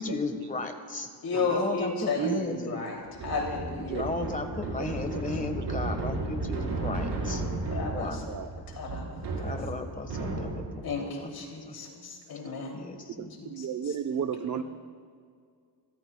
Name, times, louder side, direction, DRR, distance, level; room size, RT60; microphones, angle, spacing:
voice 1, 0.0-2.8 3.8-8.4 9.3-11.8 12.7-13.5, left 3 dB, 20° left, 6 dB, 1.4 m, -36 dB
voice 2, 1.2-4.0 7.7-8.3 8.7-9.3 10.8-12.8 13.4-13.9 14.5-14.6, left 4 dB, 60° left, 0 dB, 2.9 m, -33 dB
voice 3, 2.2-2.7 3.9-4.1 8.3-8.5 13.2-14.6, right 8 dB, 45° right, 9 dB, 0.8 m, -32 dB
sound 1, 3.1-10.9, right 2 dB, 85° right, 4.6 m, -34 dB
27.5 x 14.0 x 2.3 m, 2.1 s
cardioid pair, 120°, 41 cm